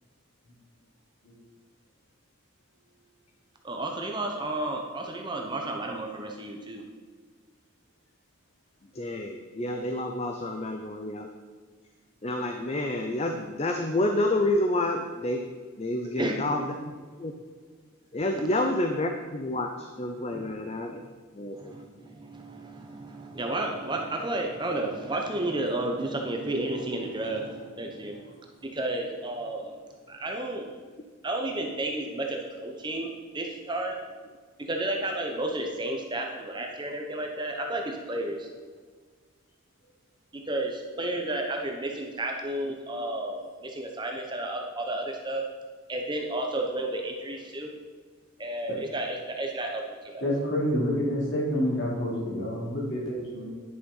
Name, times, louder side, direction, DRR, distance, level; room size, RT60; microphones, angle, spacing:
voice 1, 3.6-6.8 16.0-16.7 20.3-20.5 21.5-28.3 28.6-29.7 30.1-30.7 31.2-34.0 34.6-38.5 40.3-45.4 45.9-47.7 48.4-50.4, right 1 dB, 20° right, 2 dB, 1.0 m, -32 dB
voice 2, 8.9-11.3 12.2-15.4 15.8-16.9 17.2-17.3 18.1-21.0 21.3-21.7, left 1 dB, 30° left, 4 dB, 0.6 m, -29 dB
voice 3, 50.2-53.5, equal, 55° left, -5 dB, 3.7 m, -28 dB
11.0 x 6.9 x 5.6 m, 1.5 s
head